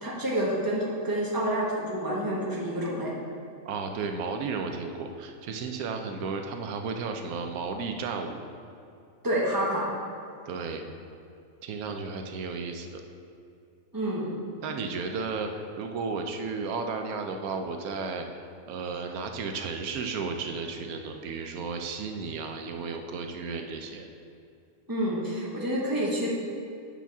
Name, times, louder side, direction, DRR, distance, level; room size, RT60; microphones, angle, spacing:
voice 1, 0.0-3.1 9.2-9.8 13.9-14.3 24.9-26.3, right 1 dB, 15° right, -6 dB, 1.3 m, -28 dB
voice 2, 3.6-8.4 10.5-10.8 11.6-13.0 14.6-18.3 18.7-24.1, right 4 dB, 85° right, 5 dB, 1.1 m, -33 dB
8.2 x 5.8 x 3.5 m, 2.6 s
omnidirectional pair, 1.5 m